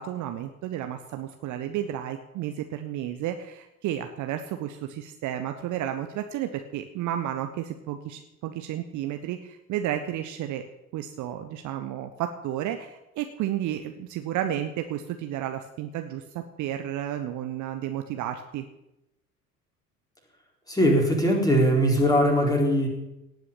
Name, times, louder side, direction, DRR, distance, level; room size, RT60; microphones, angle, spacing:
voice 1, 0.0-10.6 10.9-18.6, right 11 dB, 40° right, 6 dB, 1.1 m, -32 dB
voice 2, 20.7-22.9, equal, 10° left, 0 dB, 4.3 m, -21 dB
18.0 x 6.3 x 8.6 m, 0.90 s
figure-of-eight pair, 65°, 45 cm